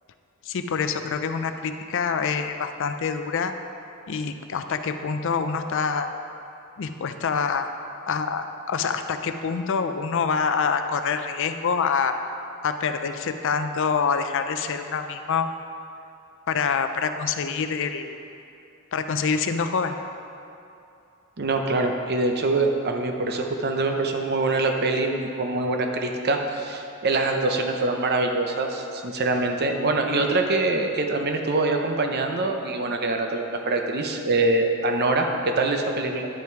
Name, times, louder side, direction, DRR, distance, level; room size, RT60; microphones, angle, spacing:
voice 1, 0.5-3.5 4.1-6.1 6.8-7.7 8.1-12.2 12.6-15.5 16.5-18.2 18.9-20.0 30.2-30.3, left 5 dB, 65° left, 8 dB, 0.5 m, -26 dB
voice 2, 21.4-36.3, right 2 dB, 50° right, 3 dB, 0.7 m, -24 dB
10.0 x 5.8 x 4.6 m, 2.7 s
head